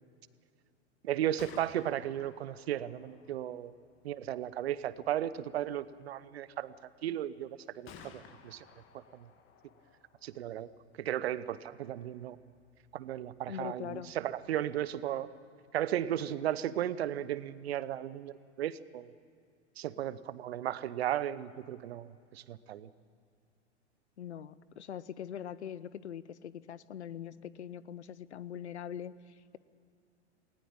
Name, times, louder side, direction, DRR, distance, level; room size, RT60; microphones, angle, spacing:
voice 1, 1.0-3.7 4.0-8.7 8.9-9.3 10.2-10.7 11.0-12.4 12.9-15.3 15.7-19.1 19.8-22.9, right 11 dB, 65° right, 17 dB, 0.9 m, -35 dB
Gunshot gunfire, 1.2-15.0, left 6 dB, 35° left, 2.1 m, -59 dB
voice 2, 13.5-14.1 24.2-29.6, left 9 dB, 75° left, 18 dB, 0.8 m, -42 dB
19.5 x 19.0 x 8.7 m, 2.3 s
figure-of-eight pair, 90°, 34 cm